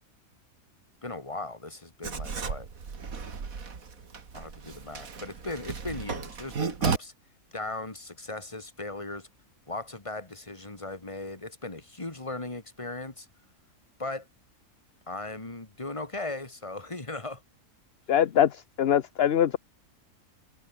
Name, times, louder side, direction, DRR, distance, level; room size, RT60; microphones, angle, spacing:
voice 1, 1.0-2.7 4.3-7.1 7.5-9.3 9.7-13.3 14.0-14.3 15.1-17.4, left 2 dB, 20° left, 2.4 m, -37 dB
Writing, 2.0-7.0, right 5 dB, 80° right, 2.5 m, -34 dB
voice 2, 18.1-19.6, left 10 dB, 50° left, 0.9 m, -23 dB
omnidirectional pair, 1.4 m